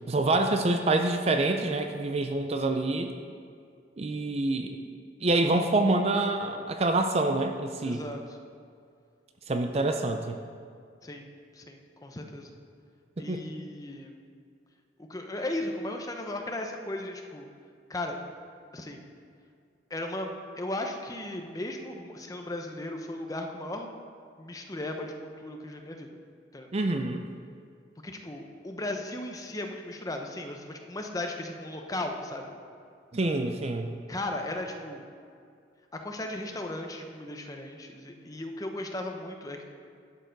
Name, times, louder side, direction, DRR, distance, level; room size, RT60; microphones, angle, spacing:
voice 1, 0.1-3.1 4.0-4.8 5.2-8.0 9.5-10.4 13.2-13.4 26.7-27.2 33.1-33.9, right 2 dB, 35° right, 6 dB, 0.5 m, -26 dB
voice 2, 7.8-8.2 11.0-11.3 11.5-12.5 13.2-14.2 15.1-17.5 17.9-18.2 18.7-19.0 19.9-23.9 24.4-26.1 26.5-26.7 28.0-32.6 34.1-35.0 35.9-39.6, left 1 dB, 20° left, 3 dB, 0.8 m, -36 dB
12.0 x 6.8 x 5.3 m, 2.3 s
head